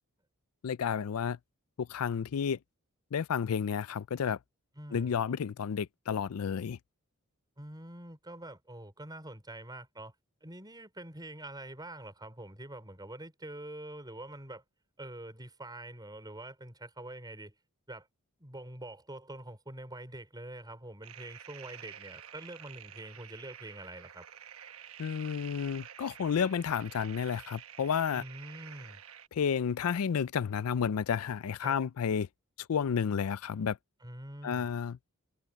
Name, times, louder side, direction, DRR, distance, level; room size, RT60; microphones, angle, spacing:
voice 1, 0.6-1.4 1.8-2.6 3.1-4.4 4.9-6.8 25.0-28.2 29.3-32.3 32.7-33.8 34.4-34.9, left 7 dB, 80° left, 0.4 m, -31 dB
voice 2, 4.8-5.2 7.6-10.1 10.4-14.6 15.0-17.5 17.9-18.1 18.4-24.3 28.1-29.0 31.6-31.8 34.0-34.7, right 1 dB, 20° right, 5.4 m, -45 dB
sound 1, 21.0-29.3, right 9 dB, 70° right, 1.2 m, -50 dB
head